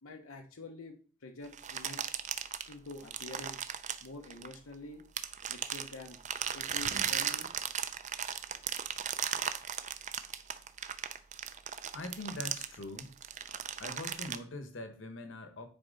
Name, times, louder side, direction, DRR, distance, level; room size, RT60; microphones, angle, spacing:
voice 1, 0.0-2.0 2.7-3.6 4.0-5.0 5.5-6.2 6.5-7.5, left 2 dB, 90° left, 0.9 m, -47 dB
sound 1, 1.5-4.7 5.2-14.4, right 8 dB, 35° right, 0.5 m, -36 dB
voice 2, 11.9-13.1 13.8-15.7, left 2 dB, 65° left, 1.2 m, -42 dB
9.8 x 4.5 x 4.0 m
head